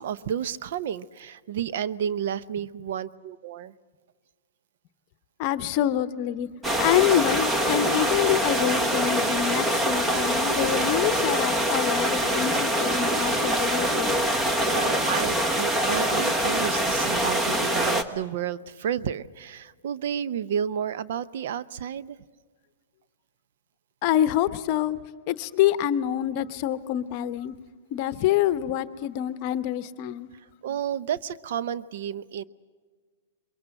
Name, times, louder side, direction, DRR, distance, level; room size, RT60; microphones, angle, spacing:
voice 1, 0.0-3.7 14.7-22.2 30.6-32.4, right 9 dB, 65° right, 15 dB, 0.6 m, -31 dB
voice 2, 5.4-6.5 6.8-14.3 24.0-25.0 25.3-27.5 27.9-30.3, left 12 dB, 45° left, 14 dB, 0.8 m, -26 dB
sound 1, 6.6-18.0, right 1 dB, 15° right, 1.1 m, -24 dB
23.0 x 22.5 x 7.7 m, 1.5 s
hypercardioid pair, 135°, 0 cm